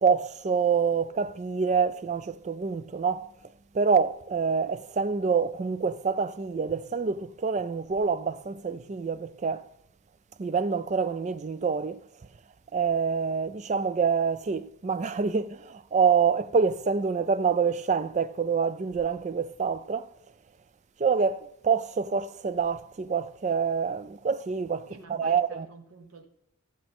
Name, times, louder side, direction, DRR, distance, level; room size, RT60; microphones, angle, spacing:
voice 1, 0.0-3.3 3.7-9.7 10.4-12.0 12.7-20.1 21.0-25.7, right 5 dB, 30° right, 0.4 m, -26 dB
voice 2, 24.9-26.3, right 3 dB, 70° right, 1.3 m, -48 dB
15.0 x 7.3 x 3.6 m
head